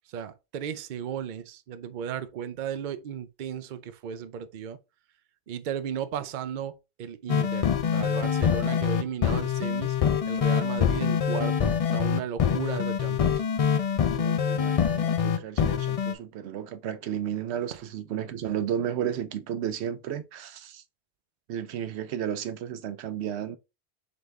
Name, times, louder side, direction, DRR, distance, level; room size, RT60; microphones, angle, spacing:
voice 1, 0.1-4.8 5.5-10.0 10.3-13.3 17.7-17.8, right 8 dB, 55° right, 0.6 m, -35 dB
sound 1, 7.3-16.1, left 7 dB, 50° left, 0.4 m, -25 dB
voice 2, 14.1-20.8 21.5-23.6, right 9 dB, 80° right, 0.8 m, -33 dB
4.0 x 3.4 x 3.5 m
omnidirectional pair, 1.1 m